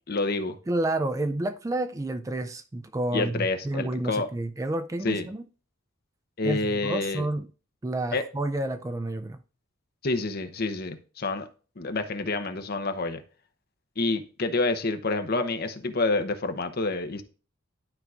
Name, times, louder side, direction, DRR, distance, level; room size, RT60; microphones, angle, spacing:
voice 1, 0.1-0.6 3.1-4.3 5.0-5.3 6.4-7.2 8.1-8.2 10.0-11.5 11.8-13.2 14.0-17.2, left 3 dB, 45° left, 0.8 m, -28 dB
voice 2, 0.7-5.5 6.4-7.5 7.8-9.4, right 1 dB, 15° right, 0.3 m, -30 dB
12.0 x 4.6 x 2.4 m
head